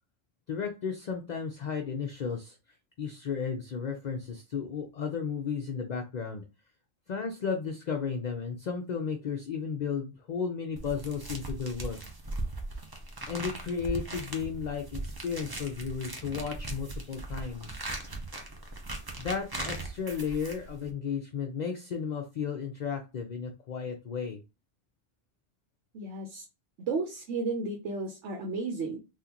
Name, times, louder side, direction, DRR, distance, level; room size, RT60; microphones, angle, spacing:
voice 1, 0.5-2.6 3.0-6.4 7.1-12.0 13.3-17.8 19.2-24.4, left 6 dB, 55° left, 3 dB, 0.5 m, -34 dB
sound 1, 10.8-20.9, right 2 dB, 25° right, 0.6 m, -39 dB
voice 2, 25.9-26.4 26.8-29.0, right 3 dB, 80° right, 2 dB, 1.1 m, -33 dB
3.8 x 2.4 x 2.8 m, 0.29 s
omnidirectional pair, 1.2 m